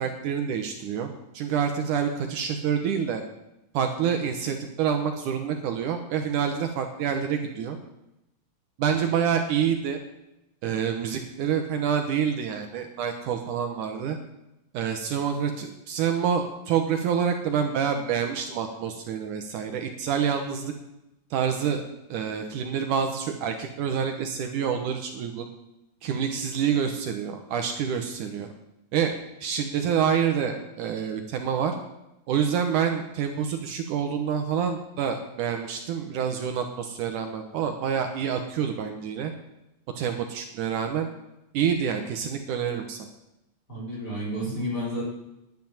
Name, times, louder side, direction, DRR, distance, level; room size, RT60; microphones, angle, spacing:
voice 1, 0.0-3.2 3.7-7.8 8.8-10.0 10.6-14.2 14.7-20.7 21.3-21.8 22.1-25.5 26.0-28.5 28.9-29.1 29.4-31.8 32.3-39.3 40.0-41.1 41.5-43.1, right 7 dB, 70° right, 5 dB, 2.3 m, -27 dB
voice 2, 43.7-45.0, equal, 25° left, -4 dB, 4.9 m, -31 dB
10.5 x 10.0 x 7.2 m, 0.90 s
omnidirectional pair, 4.0 m